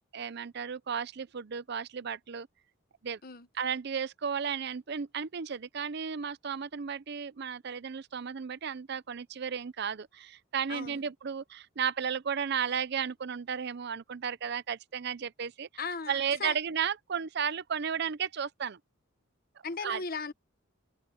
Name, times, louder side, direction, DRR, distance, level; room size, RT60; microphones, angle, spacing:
voice 1, 0.1-2.5 3.0-3.2 3.5-15.7 16.1-18.8 19.8-20.0, right 7 dB, 50° right, 0.5 m, -34 dB
voice 2, 15.8-16.5 19.6-20.3, left 4 dB, 45° left, 1.2 m, -37 dB
head